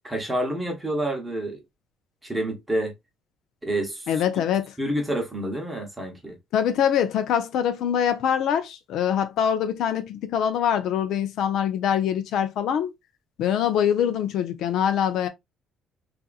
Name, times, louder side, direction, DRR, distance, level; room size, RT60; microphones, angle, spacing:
voice 1, 0.0-1.6 2.2-2.9 3.6-4.1 4.4-4.5 4.8-6.4, right 1 dB, 10° right, 0.9 m, -28 dB
voice 2, 4.1-4.7 6.5-12.9 13.4-15.3, left 9 dB, 70° left, 0.4 m, -24 dB
2.7 x 2.4 x 2.4 m
cardioid pair, 125°, 0 cm